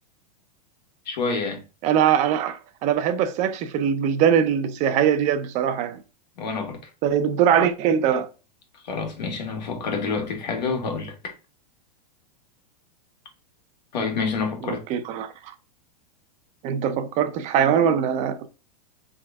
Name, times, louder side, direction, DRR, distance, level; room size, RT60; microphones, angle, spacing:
voice 1, 1.1-1.6 6.4-6.8 8.8-11.3 13.9-14.8, left 4 dB, 85° left, 1.7 m, -28 dB
voice 2, 1.8-6.0 7.0-8.3 14.6-15.5 16.6-18.5, right 8 dB, 35° right, 0.5 m, -22 dB
3.7 x 3.5 x 3.5 m
supercardioid pair, 140°, 21 cm